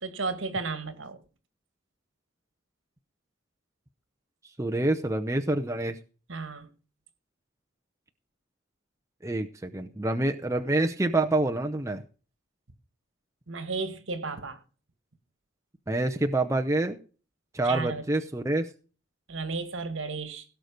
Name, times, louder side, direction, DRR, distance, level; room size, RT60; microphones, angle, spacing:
voice 1, 0.0-1.2 6.3-6.7 13.5-14.6 17.6-18.0 19.3-20.4, right 4 dB, 70° right, 1.8 m, -33 dB
voice 2, 4.6-6.0 9.2-12.0 15.9-17.0 17.5-18.7, right 2 dB, 15° right, 0.7 m, -27 dB
17.0 x 6.5 x 5.2 m
head